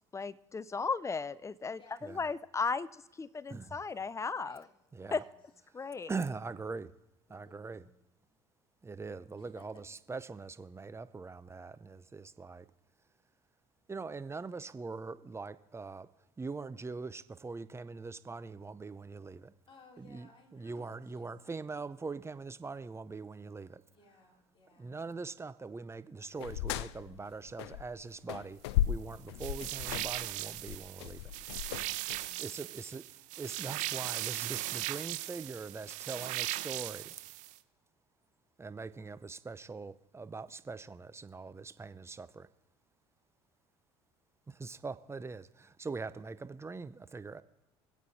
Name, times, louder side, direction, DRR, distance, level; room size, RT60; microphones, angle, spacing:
voice 1, 0.1-4.6 5.1-5.2 5.7-6.1, left 4 dB, 20° left, 19 dB, 0.5 m, -36 dB
voice 2, 1.7-2.2 4.4-4.7 5.0-5.4 7.3-7.9 9.3-9.8 19.7-21.8 23.9-25.0 31.8-32.3, left 3 dB, 40° left, 0 dB, 3.7 m, -61 dB
voice 3, 4.9-5.2 6.1-6.9 7.3-7.8 8.8-12.6 13.9-16.1 16.4-19.5 20.0-23.8 24.8-28.6 28.9-31.2 32.4-33.0 33.4-37.2 38.6-42.5 44.5-47.4, right 4 dB, 20° right, 14 dB, 0.7 m, -42 dB
sound 1, 26.4-28.0 28.3-32.3, left 13 dB, 85° left, 0.4 m, -35 dB
sound 2, 29.4-37.6, right 18 dB, 65° right, 0.7 m, -38 dB
24.0 x 8.4 x 4.2 m, 0.91 s
hypercardioid pair, 70°, 13 cm